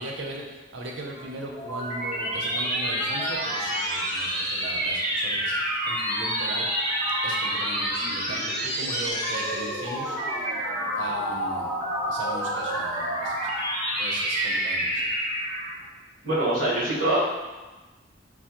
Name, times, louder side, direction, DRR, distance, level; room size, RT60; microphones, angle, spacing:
voice 1, 0.0-6.7 7.2-10.6 11.0-11.7 12.1-13.5 14.0-15.1, right 1 dB, 80° right, 0 dB, 0.7 m, -38 dB
sound 1, 1.2-15.8, right 1 dB, ahead, 1.3 m, -28 dB
sound 2, 8.9-10.0, equal, 40° left, 0.5 m, -42 dB
voice 2, 16.2-17.3, right 1 dB, 45° right, -8 dB, 1.3 m, -23 dB
5.9 x 2.0 x 2.9 m, 1.2 s
head